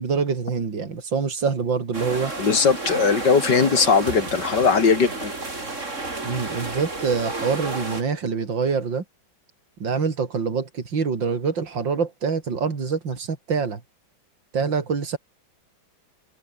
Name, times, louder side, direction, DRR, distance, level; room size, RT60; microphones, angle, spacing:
voice 1, 0.0-2.3 6.2-9.0 9.8-13.8 14.5-15.2, right 5 dB, 65° right, 3.8 m, -25 dB
sound 1, 1.9-8.0, right 2 dB, 35° right, 4.4 m, -31 dB
voice 2, 2.4-5.3, left 5 dB, 55° left, 3.0 m, -19 dB
omnidirectional pair, 2.2 m